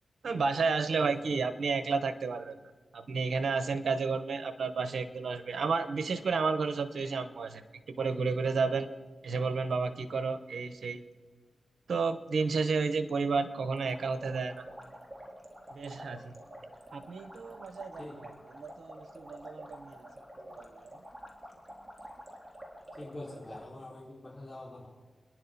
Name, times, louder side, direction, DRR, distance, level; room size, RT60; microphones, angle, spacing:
voice 1, 0.2-2.5 2.9-7.6 7.9-8.9 9.2-11.0 11.9-14.7 15.7-16.4 16.9-20.1 20.4-20.9, right 4 dB, 80° right, 11 dB, 1.0 m, -32 dB
voice 2, 0.9-1.4 18.0-18.2 23.0-24.9, left 1 dB, 30° left, -6 dB, 5.0 m, -45 dB
sound 1, 13.7-23.6, equal, 20° right, 3.8 m, -49 dB
28.5 x 10.5 x 4.1 m, 1.4 s
cardioid pair, 45°, 0 cm